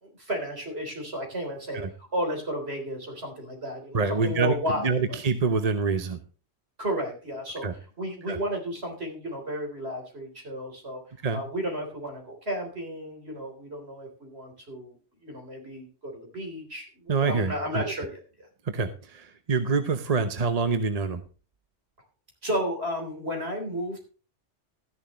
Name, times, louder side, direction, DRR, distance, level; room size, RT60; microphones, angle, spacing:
voice 1, 0.0-5.2 6.8-7.7 8.0-11.0 11.3-15.0 15.2-18.5 22.4-24.0, equal, 65° right, 3 dB, 4.0 m, -33 dB
voice 2, 3.9-4.5 4.8-6.2 7.6-7.7 8.3-8.4 11.2-11.4 17.1-17.8 18.7-21.2, right 4 dB, 40° right, 9 dB, 0.9 m, -26 dB
14.0 x 10.5 x 3.1 m, 0.36 s
omnidirectional pair, 1.1 m